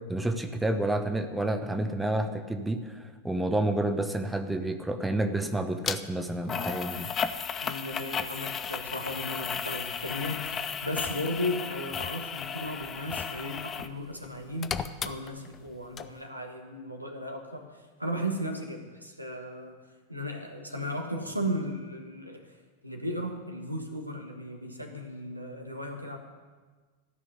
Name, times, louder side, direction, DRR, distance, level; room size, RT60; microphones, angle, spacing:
voice 1, 0.1-7.1, right 1 dB, 5° right, 7 dB, 0.9 m, -29 dB
sound 1, 5.8-6.0 6.5-13.9 14.2-15.7 16.0-16.1, left 7 dB, 25° left, 0.6 m, -34 dB
voice 2, 7.6-14.7 15.0-17.7 18.0-19.8 20.1-22.6 22.8-26.2, equal, 90° right, 3 dB, 1.5 m, -35 dB
13.5 x 6.2 x 9.9 m, 1.4 s
figure-of-eight pair, 90°, 0 cm